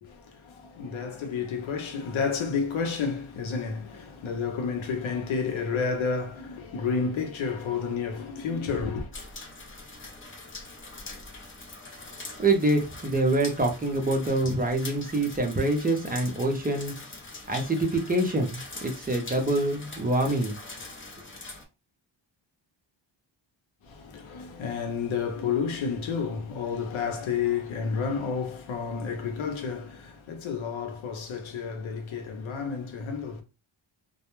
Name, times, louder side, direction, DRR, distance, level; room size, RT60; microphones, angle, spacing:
voice 1, 0.0-9.1 23.8-33.4, left 5 dB, 85° left, 0.8 m, -30 dB
sound 1, 9.1-21.6, left 3 dB, 25° left, 0.6 m, -43 dB
voice 2, 12.4-16.9 17.5-20.6, right 2 dB, 20° right, 0.5 m, -25 dB
2.2 x 2.1 x 3.0 m
wide cardioid pair, 130°, 47 cm